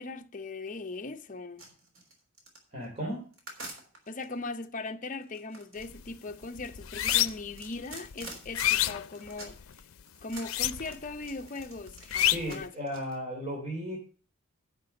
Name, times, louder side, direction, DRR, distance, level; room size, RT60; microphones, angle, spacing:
voice 1, 0.0-1.6 4.1-9.6 10.2-12.7, left 3 dB, 40° left, 0.8 m, -39 dB
sound 1, 1.6-4.3 5.1-9.8 10.1-13.1, right 2 dB, 70° right, 3.4 m, -46 dB
voice 2, 2.7-3.2 12.2-14.0, equal, 35° right, 3.0 m, -35 dB
sound 2, 5.8-6.1 6.4-7.6 8.0-9.7 10.4-11.1 11.4-12.6, left 13 dB, 90° left, 0.5 m, -28 dB
11.0 x 5.9 x 6.5 m
head